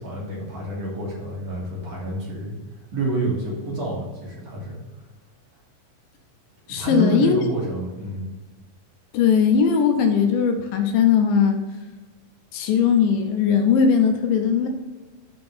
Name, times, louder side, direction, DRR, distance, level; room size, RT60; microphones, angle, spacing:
voice 1, 0.0-2.6 2.9-4.8 6.7-8.3, right 1 dB, 60° right, -4 dB, 2.1 m, -28 dB
voice 2, 6.7-7.4 9.1-11.6 12.5-14.7, left 6 dB, 85° left, 5 dB, 2.4 m, -19 dB
6.8 x 3.6 x 5.6 m, 1.2 s
omnidirectional pair, 4.1 m